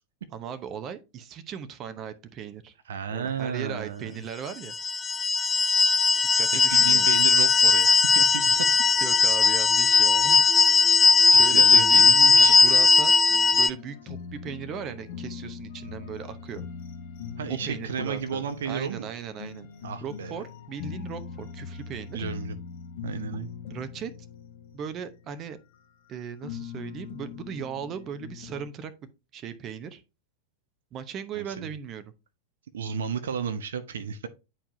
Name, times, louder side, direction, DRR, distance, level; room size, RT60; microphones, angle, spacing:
voice 1, 0.3-2.7 3.1-4.7 6.4-7.1 9.0-10.4 11.3-12.1 12.4-13.2 13.5-16.7 17.5-19.7 20.0-22.3 23.7-24.1 24.7-25.6 26.1-28.9 29.3-30.0 30.9-32.1, right 7 dB, 30° right, 0.8 m, -38 dB
voice 2, 2.9-4.1 6.7-8.7 11.5-12.6 17.4-19.1 19.8-20.3 22.1-22.6 23.0-23.5 31.4-31.7 32.7-34.3, right 7 dB, 60° right, 0.7 m, -32 dB
sound 1, 4.7-13.7, left 4 dB, 15° left, 0.4 m, -18 dB
sound 2, 13.3-26.1 26.4-28.7, left 6 dB, 55° left, 1.1 m, -41 dB
10.0 x 4.6 x 2.7 m
figure-of-eight pair, 90°, 0 cm